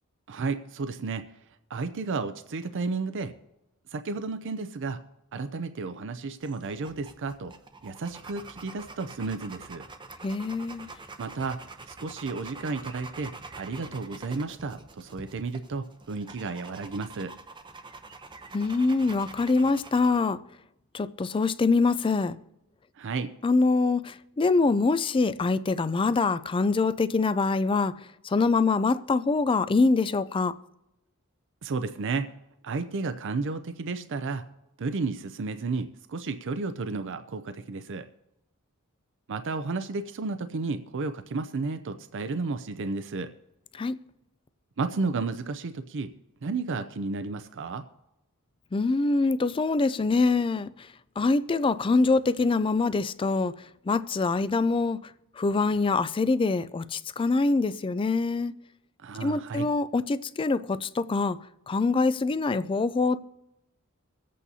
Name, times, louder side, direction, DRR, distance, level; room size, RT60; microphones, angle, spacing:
voice 1, 0.3-1.2 1.7-3.3 3.9-5.0 5.3-7.5 7.8-9.8 11.2-17.4 23.0-23.3 31.6-32.4 32.6-34.5 34.8-38.1 39.3-43.3 44.8-46.1 46.4-47.8 59.0-59.7, right 4 dB, 60° right, 0.5 m, -32 dB
sound 1, 6.4-20.2, right 3 dB, 20° right, 0.7 m, -46 dB
voice 2, 10.2-10.9 18.5-20.4 20.9-22.4 23.4-27.9 28.2-30.6 43.7-44.0 48.7-50.7 51.2-53.5 53.9-55.1 55.4-58.5 59.2-61.4 61.7-63.2, left 3 dB, 25° left, 0.4 m, -24 dB
24.0 x 8.4 x 2.8 m
head